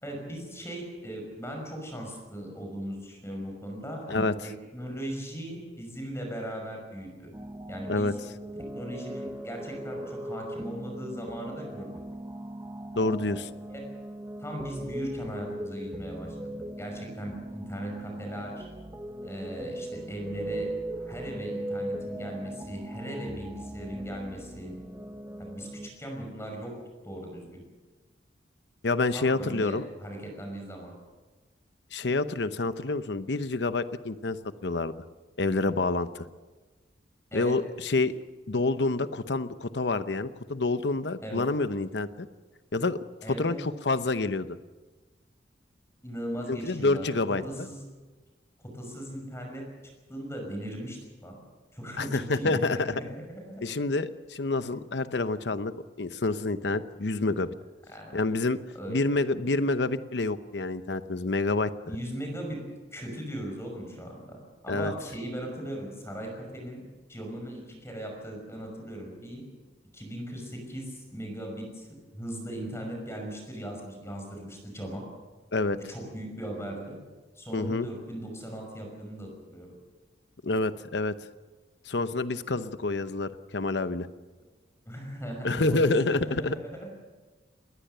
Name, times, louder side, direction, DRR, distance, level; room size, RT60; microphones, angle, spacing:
voice 1, 0.0-7.3 7.7-8.1 8.7-11.9 13.7-13.8 14.4-18.7 19.2-20.7 21.0-24.7 25.5-26.7 27.0-27.6 29.1-30.9 37.3-37.5 41.2-41.4 43.2-43.6 46.0-47.8 48.7-49.6 50.1-51.4 51.7-53.8 57.9-58.2 58.7-59.0 61.9-62.6 62.9-64.4 64.6-66.8 67.1-69.4 69.9-71.9 72.1-75.0 75.7-77.0 77.3-79.7 84.8-86.9, equal, 15° left, 2 dB, 5.8 m, -38 dB
sound 1, 7.3-25.9, right 1 dB, 15° right, 0.9 m, -39 dB
voice 2, 13.0-13.5 28.8-29.8 31.9-34.4 34.6-34.9 35.4-36.3 37.3-38.1 38.5-42.3 42.7-43.0 43.3-44.6 46.5-47.4 52.0-53.0 53.6-55.7 56.0-57.5 58.1-58.6 58.9-61.7 64.7-64.9 75.5-75.8 77.5-77.9 80.4-81.1 81.9-84.1 85.4-86.6, left 3 dB, 70° left, 12 dB, 0.9 m, -28 dB
20.5 x 19.5 x 6.9 m, 1.3 s
head